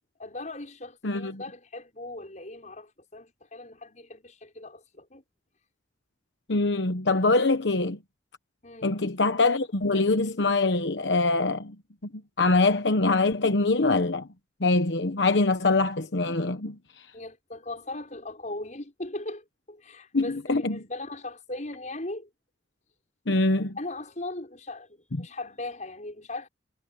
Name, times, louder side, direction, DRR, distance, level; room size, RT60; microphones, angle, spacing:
voice 1, 0.2-5.2 8.6-8.9 17.1-22.3 23.8-26.5, left 2 dB, 45° left, 6.1 m, -39 dB
voice 2, 1.0-1.4 6.5-8.0 8.8-11.8 12.4-14.3 14.6-16.8 20.1-20.8 23.3-23.8 25.2-25.3, left 3 dB, 80° left, 1.1 m, -24 dB
head